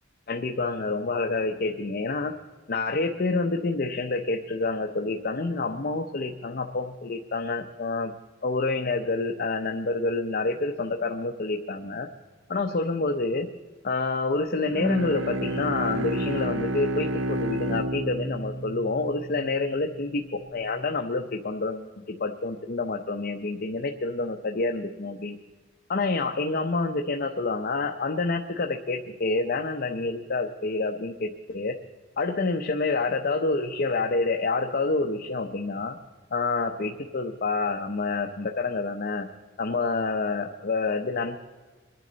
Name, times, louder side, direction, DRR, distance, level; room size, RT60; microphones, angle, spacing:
voice 1, 0.3-2.3 2.7-8.1 8.4-12.1 12.5-13.5 13.8-25.3 25.9-31.7 32.2-36.0 36.3-39.3 39.6-41.4, left 3 dB, 50° left, 3 dB, 0.7 m, -28 dB
Bowed string instrument, 14.6-20.0, right 1 dB, 70° right, 0.9 m, -30 dB
24.0 x 10.5 x 4.0 m, 1.3 s
head